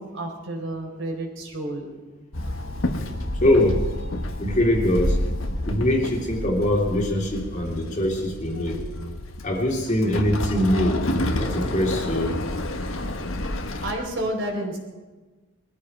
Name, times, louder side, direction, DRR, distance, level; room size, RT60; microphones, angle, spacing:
voice 1, 0.0-1.9 13.8-14.8, right 1 dB, 65° right, 1 dB, 4.0 m, -30 dB
Walk footsteps / Chatter / Hiss, 2.3-13.9, left 1 dB, 75° left, 1.4 m, -29 dB
voice 2, 3.3-3.8 4.4-5.2 5.7-8.8 9.4-11.0 11.4-12.4, left 1 dB, 35° left, 0 dB, 2.6 m, -23 dB
21.0 x 14.5 x 4.6 m, 1.3 s
head